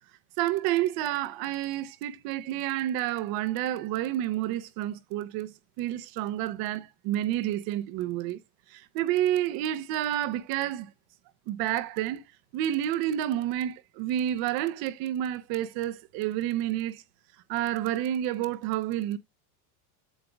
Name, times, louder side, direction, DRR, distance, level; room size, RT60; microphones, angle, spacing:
voice 1, 0.4-8.4 8.7-10.9 11.5-12.2 12.5-17.0 17.5-19.2, right 12 dB, 50° right, 0.9 m, -29 dB
8.2 x 6.5 x 2.2 m
supercardioid pair, 145°, 44 cm